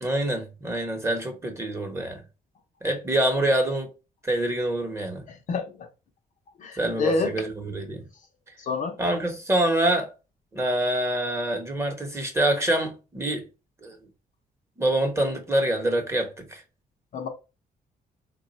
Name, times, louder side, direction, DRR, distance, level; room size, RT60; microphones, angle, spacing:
voice 1, 0.0-2.2 2.8-3.9 4.2-5.2 6.8-8.1 9.0-10.1 10.5-13.5 13.8-14.0 14.8-16.6, right 1 dB, 15° right, 1.0 m, -26 dB
voice 2, 5.3-5.9 6.6-7.5 8.6-9.0 17.1-17.3, left 3 dB, 55° left, 0.7 m, -28 dB
3.7 x 2.3 x 4.0 m
cardioid pair, 135°, 16 cm